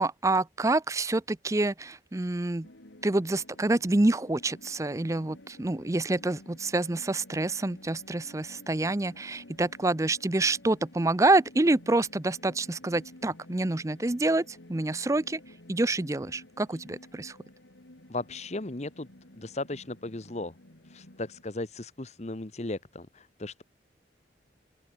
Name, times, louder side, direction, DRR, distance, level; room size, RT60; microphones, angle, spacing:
voice 1, 0.0-2.7 3.0-15.4 15.7-17.4, right 2 dB, 15° right, 0.5 m, -27 dB
sound 1, 2.6-21.4, left 1 dB, 90° left, 3.2 m, -52 dB
voice 2, 18.1-19.1 19.4-20.5 20.8-23.6, left 2 dB, 40° left, 1.1 m, -36 dB
open air
head